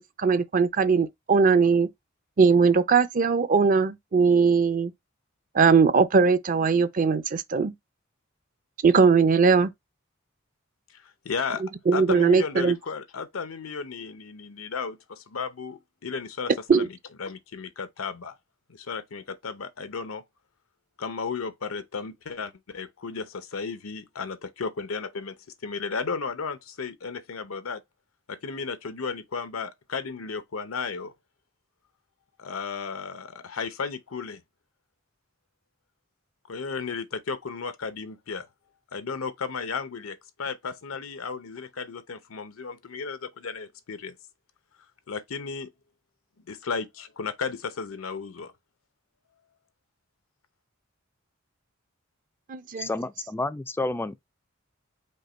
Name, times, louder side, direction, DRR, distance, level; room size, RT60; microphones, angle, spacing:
voice 1, 0.0-1.9 2.4-4.9 5.5-7.7 8.8-9.7 11.9-12.8 16.7-16.9 52.5-52.9, right 5 dB, 40° right, 0.5 m, -20 dB
voice 2, 10.9-11.6 11.9-18.3 18.7-20.2 21.0-25.4 25.6-27.8 28.3-31.1 32.4-34.4 36.5-38.5 38.9-44.2 45.1-45.7 46.4-48.5, left 5 dB, 90° left, 0.7 m, -34 dB
voice 3, 52.8-54.2, left 2 dB, 10° left, 0.3 m, -30 dB
5.4 x 2.2 x 4.2 m
head